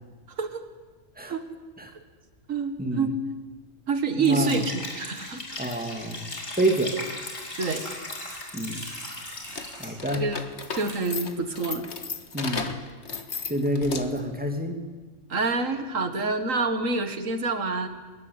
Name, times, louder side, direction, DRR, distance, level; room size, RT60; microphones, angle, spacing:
voice 1, 2.5-3.2 3.9-5.6 7.6-7.8 10.1-10.4 10.7-11.9 12.4-12.7 15.3-17.9, right 4 dB, 85° right, 8 dB, 2.2 m, -27 dB
Liquid, 4.2-9.7, left 2 dB, 85° left, 5.2 m, -37 dB
voice 2, 4.2-4.6 5.6-7.0 8.5-8.9 9.8-10.3 12.3-12.7 13.5-14.8, right 1 dB, 5° right, 4 dB, 2.6 m, -28 dB
sound 1, 6.5-10.0 10.5-11.0 11.7-11.8 12.0-12.1, equal, 15° left, 6.7 m, -44 dB
sound 2, 9.5-14.3, left 4 dB, 60° left, 1.9 m, -35 dB
22.5 x 21.5 x 9.8 m, 1.3 s
omnidirectional pair, 1.3 m